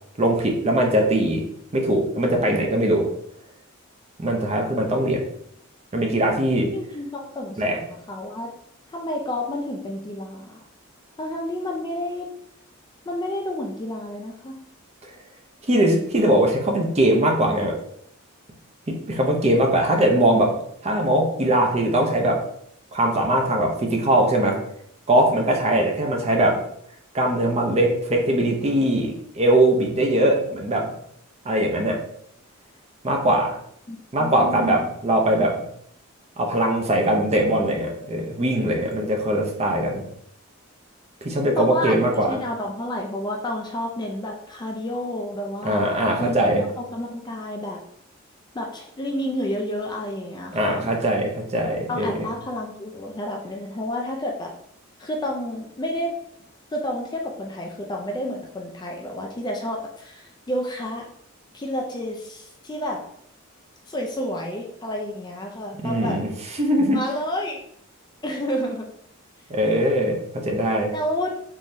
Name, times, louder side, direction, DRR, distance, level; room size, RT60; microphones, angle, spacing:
voice 1, 0.2-1.4 1.7-3.1 4.2-5.2 5.9-6.7 7.6-7.8 15.0-15.1 15.7-17.8 18.9-20.5 20.8-22.4 22.9-24.6 25.1-26.6 27.1-30.9 31.4-32.0 33.0-33.6 34.1-35.6 36.4-40.0 41.2-42.4 45.6-46.6 50.5-52.3 65.8-67.0 69.5-70.9, right 1 dB, 30° right, 1 dB, 0.6 m, -21 dB
voice 2, 6.7-8.5 8.9-10.6 11.2-12.3 13.1-14.6 33.9-34.9 41.6-45.9 46.2-46.4 46.8-47.8 48.5-50.9 51.9-54.5 55.0-56.1 56.7-61.0 61.5-63.0 63.9-66.2 66.9-67.6 68.2-68.9 70.9-71.3, left 1 dB, 20° left, 0 dB, 0.4 m, -30 dB
3.7 x 3.0 x 2.6 m, 0.69 s
head